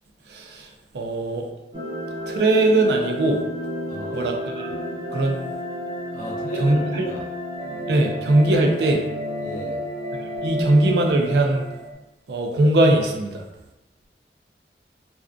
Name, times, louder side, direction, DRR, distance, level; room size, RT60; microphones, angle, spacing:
voice 1, 0.3-0.7 0.9-1.4 2.3-3.4 4.1-4.7 5.1-5.4 6.6-7.1 7.9-9.0 10.2-11.7 12.3-13.4, right 2 dB, 70° right, 2 dB, 0.4 m, -20 dB
sound 1, 1.7-11.9, equal, 30° right, 0.7 m, -31 dB
voice 2, 3.9-4.3 6.1-7.3 9.4-9.8, equal, 45° left, -3 dB, 0.6 m, -34 dB
2.4 x 2.2 x 2.4 m, 1.0 s
head